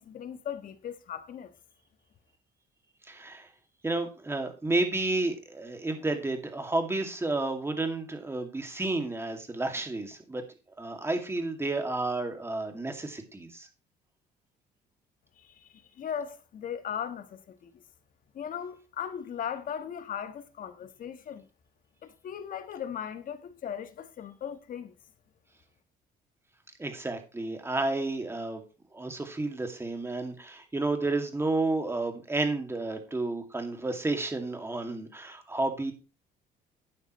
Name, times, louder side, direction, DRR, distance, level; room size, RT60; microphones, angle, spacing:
voice 1, 0.0-1.5 15.4-17.7 18.3-21.5 22.0-24.9, left 8 dB, 55° left, 1.4 m, -38 dB
voice 2, 3.1-3.5 3.8-10.4 10.8-13.7 26.8-28.6 28.9-35.9, right 2 dB, 15° right, 2.3 m, -31 dB
12.0 x 9.3 x 3.2 m
cardioid pair, 110°, 17 cm